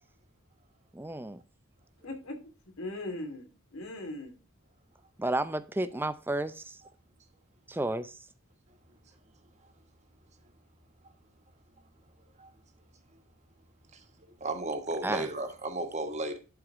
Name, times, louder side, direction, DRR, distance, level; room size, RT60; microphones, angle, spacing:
voice 1, 0.9-1.4 5.2-6.8 7.7-8.1 15.0-15.3, right 2 dB, 10° right, 0.5 m, -32 dB
voice 2, 2.0-2.5 2.8-4.4, left 1 dB, 75° left, 2.5 m, -39 dB
voice 3, 14.4-16.4, right 2 dB, 30° right, 1.4 m, -34 dB
11.5 x 4.8 x 3.7 m
head